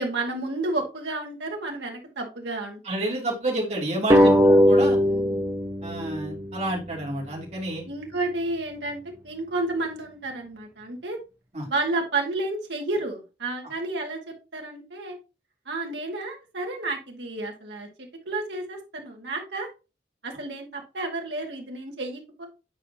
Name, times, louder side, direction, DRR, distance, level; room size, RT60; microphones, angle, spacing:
voice 1, 0.0-3.0 4.2-4.4 5.0-5.4 7.9-11.2 11.7-15.2 15.7-19.7 20.2-22.5, right 2 dB, 85° right, 1 dB, 1.9 m, -31 dB
voice 2, 2.8-5.0 5.8-7.8 11.5-11.6, right 1 dB, 40° right, -3 dB, 3.0 m, -29 dB
sound 1, 4.1-7.3, equal, 15° right, 0.9 m, -20 dB
8.5 x 4.9 x 2.8 m, 0.28 s
head